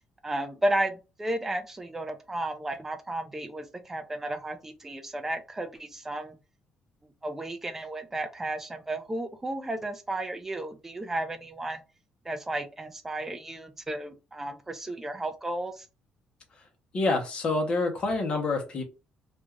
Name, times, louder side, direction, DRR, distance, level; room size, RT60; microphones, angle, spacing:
voice 1, 0.2-6.4 7.0-11.8 12.2-15.9, right 1 dB, 15° right, 7 dB, 0.4 m, -33 dB
voice 2, 16.9-18.8, left 3 dB, 40° left, 3 dB, 0.8 m, -27 dB
2.5 x 2.3 x 3.1 m, 0.29 s
cardioid pair, 145°, 3 cm